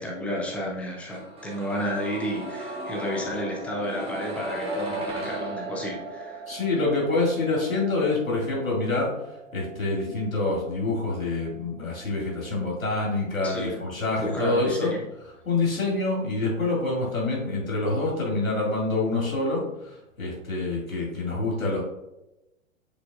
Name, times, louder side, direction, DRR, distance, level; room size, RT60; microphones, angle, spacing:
voice 1, 0.0-6.6 13.4-13.7 14.2-15.0, equal, 5° left, -2 dB, 0.4 m, -32 dB
sound 1, 1.1-13.0 13.2-13.3, right 2 dB, 15° right, 1.3 m, -37 dB
voice 2, 6.5-9.1 9.5-14.9 15.5-21.8, left 2 dB, 80° left, -3 dB, 2.3 m, -26 dB
9.0 x 5.0 x 2.4 m, 0.93 s
figure-of-eight pair, 110°, 40 cm